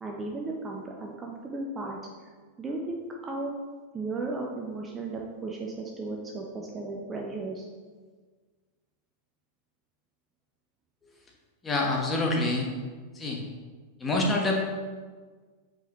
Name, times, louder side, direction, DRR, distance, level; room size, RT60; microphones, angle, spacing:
voice 1, 0.0-2.0 2.6-3.5 3.9-7.7, right 3 dB, 20° right, -1 dB, 0.8 m, -35 dB
voice 2, 11.6-12.7 13.1-13.4 14.0-14.6, left 2 dB, 15° left, -1 dB, 1.4 m, -26 dB
8.0 x 5.1 x 3.1 m, 1.5 s
figure-of-eight pair, 90°, 0 cm